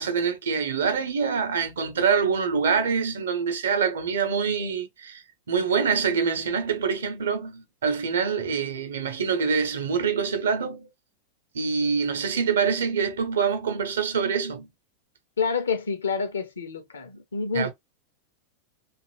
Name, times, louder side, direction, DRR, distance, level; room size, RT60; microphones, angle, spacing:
voice 1, 0.0-10.9 11.5-14.7 17.5-17.7, right 6 dB, 65° right, 0.6 m, -25 dB
voice 2, 15.4-17.7, left 5 dB, 70° left, 0.6 m, -28 dB
2.6 x 2.4 x 2.9 m
figure-of-eight pair, 90°, 0 cm